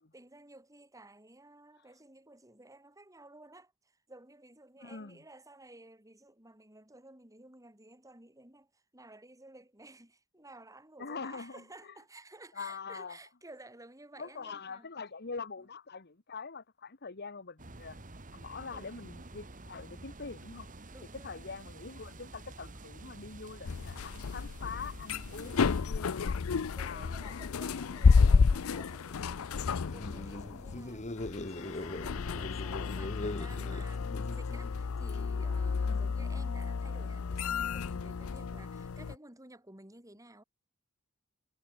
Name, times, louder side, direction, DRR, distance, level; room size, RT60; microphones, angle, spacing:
voice 1, 0.1-14.9 15.6-15.7 18.6-19.3 20.9-21.5 25.4-26.0 26.7-40.4, right 2 dB, 15° right, 4.9 m, -54 dB
voice 2, 4.8-5.2 11.0-11.6 12.5-13.2 14.2-18.0 18.3-20.7 21.2-26.4 26.8-27.5 27.9-28.2 35.8-36.0, left 5 dB, 50° left, 1.4 m, -44 dB
sound 1, 17.6-25.8, right 2 dB, 40° right, 2.0 m, -49 dB
sound 2, 23.7-39.1, left 5 dB, 70° left, 0.5 m, -31 dB
sound 3, 29.7-34.8, left 1 dB, 35° left, 1.8 m, -41 dB
head